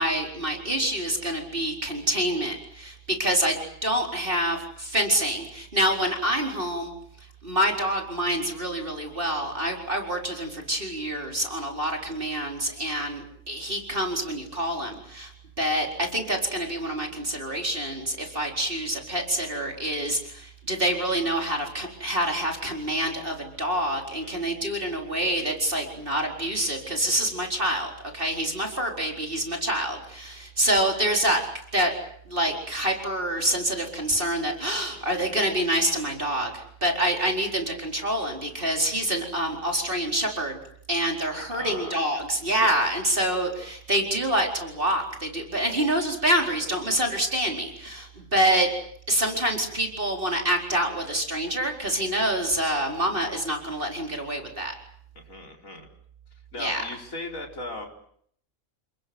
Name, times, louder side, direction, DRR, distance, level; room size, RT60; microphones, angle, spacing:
voice 1, 0.0-6.9 7.4-15.3 15.6-31.4 31.7-31.9 32.3-40.6 40.9-48.7 49.1-54.7 56.6-56.8, right 1 dB, 40° right, 1 dB, 4.6 m, -26 dB
voice 2, 34.7-35.0 41.5-42.0 42.6-43.0 55.1-55.9 56.5-57.9, left 2 dB, 70° left, 1 dB, 5.1 m, -38 dB
29.5 x 20.5 x 7.9 m, 0.65 s
omnidirectional pair, 1.5 m